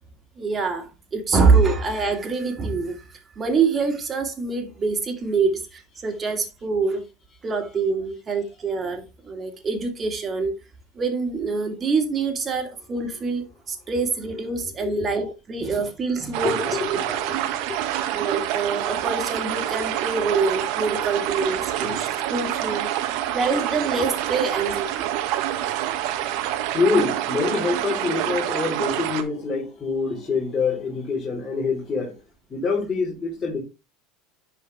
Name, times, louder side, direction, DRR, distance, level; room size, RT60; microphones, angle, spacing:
voice 1, 0.4-3.0 3.4-7.0 7.4-10.5 11.0-17.2 18.1-22.9 23.3-24.9, right 4 dB, 30° right, 2.4 m, -25 dB
voice 2, 14.8-15.1 16.4-17.3 17.7-17.8 20.9-21.1 21.8-22.0 26.7-32.1 32.5-33.6, left 4 dB, 30° left, 3.8 m, -26 dB
sound 1, 16.3-29.2, right 12 dB, 65° right, 1.5 m, -27 dB
10.5 x 4.9 x 3.4 m
hypercardioid pair, 95°, 0 cm